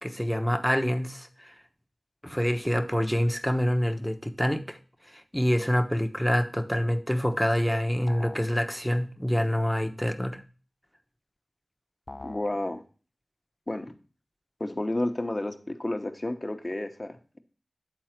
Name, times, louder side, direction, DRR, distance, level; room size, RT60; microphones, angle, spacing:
voice 1, 0.0-1.5 2.2-4.8 5.1-10.4, equal, ahead, 1.1 m, -26 dB
sound 1, 8.1-8.5 12.1-12.5, left 2 dB, 50° left, 0.6 m, -42 dB
voice 2, 12.2-12.8 13.7-13.9 14.6-17.4, left 1 dB, 30° left, 1.1 m, -31 dB
9.2 x 4.0 x 5.9 m
cardioid pair, 40°, 0 cm